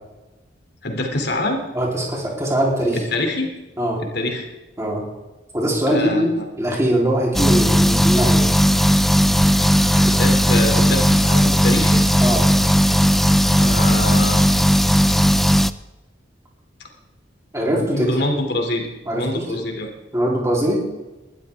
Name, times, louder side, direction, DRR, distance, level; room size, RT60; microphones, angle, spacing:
voice 1, 0.8-1.6 3.1-3.5 4.0-4.5 5.9-6.4 9.9-12.0 13.5-14.5 17.8-18.9 19.1-19.9, left 1 dB, 60° left, 3 dB, 2.7 m, -25 dB
voice 2, 1.7-3.0 3.8-4.0 4.8-5.0 5.5-8.5 10.1-10.2 12.2-12.5 17.5-18.1 19.1-19.6 20.1-20.8, equal, 15° right, -3 dB, 3.4 m, -21 dB
sound 1, 7.3-15.7, equal, ahead, 0.3 m, -16 dB
20.0 x 12.5 x 3.6 m, 1.1 s
head